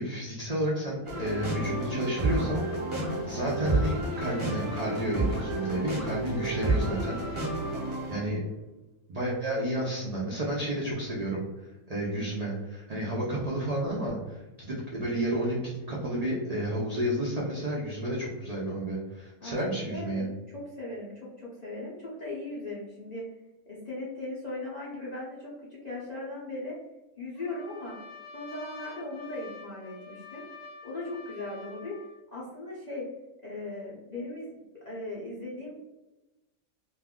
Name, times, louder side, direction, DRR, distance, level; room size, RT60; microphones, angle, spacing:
voice 1, 0.0-2.6 3.3-7.7 8.1-8.4 9.1-20.3, right 1 dB, 70° right, -5 dB, 0.3 m, -31 dB
sound 1, 1.0-8.2, right 2 dB, 25° right, 0.7 m, -30 dB
voice 2, 19.4-20.3 20.5-23.3 23.7-26.8 27.2-28.0 28.3-30.4 30.8-32.0 32.3-33.1 33.4-34.5 34.8-35.7, left 2 dB, 50° left, -7 dB, 0.5 m, -38 dB
Trumpet, 27.4-32.2, left 4 dB, 70° left, 0.9 m, -47 dB
2.5 x 2.2 x 3.5 m, 1.0 s
omnidirectional pair, 1.5 m